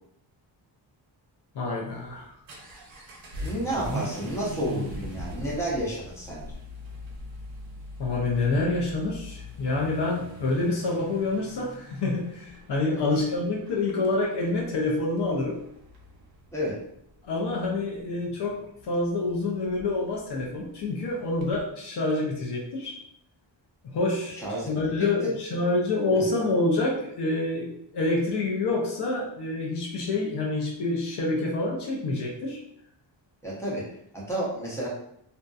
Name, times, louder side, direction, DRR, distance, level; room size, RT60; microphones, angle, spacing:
voice 1, 1.5-2.3 8.0-15.6 17.2-18.6 18.8-22.9 23.8-24.3 24.7-32.6, left 2 dB, 60° left, -2 dB, 0.6 m, -27 dB
Vehicle / Accelerating revving vroom, 1.9-21.7, equal, 75° right, 0.7 m, -41 dB
voice 2, 3.4-6.5 12.9-13.2 16.5-16.8 24.4-25.3 26.1-26.3 33.4-33.8 34.1-34.9, equal, 5° left, -6 dB, 0.8 m, -31 dB
2.6 x 2.1 x 2.3 m, 0.73 s
wide cardioid pair, 115°, 46 cm